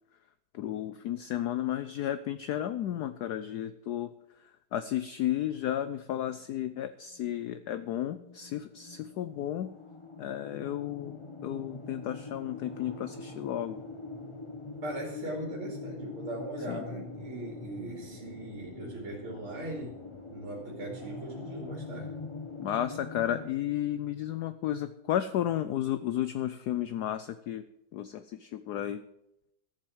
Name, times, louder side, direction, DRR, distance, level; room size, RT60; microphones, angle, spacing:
voice 1, 0.5-4.1 4.7-9.7 10.2-11.2 11.4-13.8 16.7-16.9 22.6-27.6 27.9-29.0, left 11 dB, 75° left, 12 dB, 0.9 m, -33 dB
sound 1, 6.8-23.5, left 3 dB, 25° left, 0.7 m, -43 dB
voice 2, 14.8-20.0 20.3-22.2, right 1 dB, 75° right, 0 dB, 3.3 m, -39 dB
14.0 x 7.5 x 7.8 m, 0.84 s
omnidirectional pair, 2.3 m